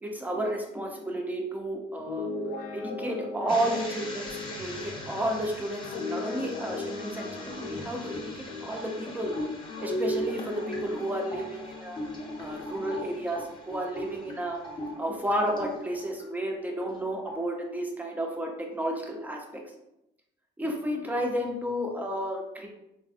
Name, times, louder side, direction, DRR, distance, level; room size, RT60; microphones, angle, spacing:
voice 1, 0.0-2.3 2.7-8.3 8.6-9.3 9.8-12.0 12.4-14.6 15.0-19.4 20.6-22.7, right 1 dB, 10° right, 1 dB, 0.6 m, -32 dB
Guitar, 2.0-9.2 9.6-13.3, left 1 dB, 75° left, 0.5 m, -37 dB
sound 1, 3.5-16.2 16.6-17.0 17.3-17.6, left 1 dB, 30° left, 0.8 m, -41 dB
3.2 x 2.5 x 2.3 m, 0.87 s
cardioid pair, 110°, 17 cm